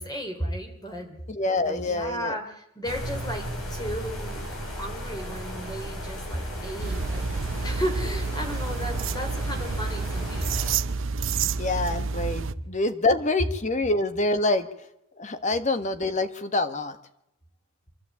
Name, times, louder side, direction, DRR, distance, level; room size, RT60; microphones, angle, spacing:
voice 1, 0.0-1.1 1.6-7.3 7.6-10.5, equal, 20° left, 4 dB, 3.4 m, -34 dB
voice 2, 1.3-2.4 11.4-14.7 15.2-17.0, left 2 dB, 35° left, 10 dB, 1.3 m, -26 dB
sound 1, 2.8-10.8, equal, 75° left, 5.1 m, -35 dB
sound 2, 6.8-12.5, right 4 dB, 60° right, 0.7 m, -29 dB
26.0 x 12.0 x 8.4 m, 0.83 s
head